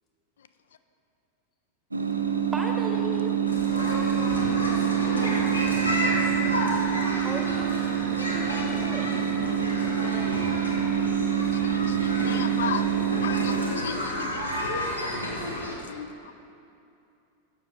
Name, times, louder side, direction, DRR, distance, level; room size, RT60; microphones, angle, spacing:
sound 1, 1.9-14.3, right 9 dB, 80° right, 0.5 m, -26 dB
voice 1, 2.5-3.4 7.2-7.7 8.1-9.2 9.7-9.8, right 1 dB, 15° right, 2 dB, 0.8 m, -36 dB
sound 2, 3.5-15.7, left 1 dB, 85° left, 0.9 m, -31 dB
voice 2, 3.8-4.2 5.0-6.0, left 3 dB, 35° left, -1 dB, 1.2 m, -41 dB
voice 3, 11.5-12.9 13.2-14.4 14.8-16.3, left 7 dB, 65° left, 10 dB, 0.3 m, -37 dB
7.1 x 6.3 x 4.1 m, 2.6 s
figure-of-eight pair, 90°, 0 cm